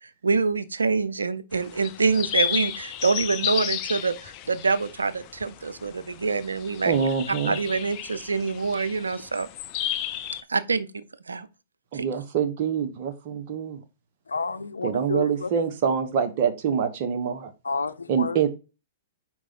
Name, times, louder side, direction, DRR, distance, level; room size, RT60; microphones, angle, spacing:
voice 1, 0.0-6.9 7.5-9.5 10.5-11.5 11.9-12.1, right 4 dB, 85° right, 0.5 m, -26 dB
sound 1, 1.5-10.4, left 11 dB, 35° left, 0.6 m, -33 dB
voice 2, 6.8-7.6 11.9-13.8 14.8-17.5 18.1-18.5, right 7 dB, 50° right, 1.2 m, -25 dB
voice 3, 14.3-15.5 17.6-18.5, left 4 dB, 85° left, 0.6 m, -30 dB
5.0 x 4.5 x 4.3 m
hypercardioid pair, 115°, 0 cm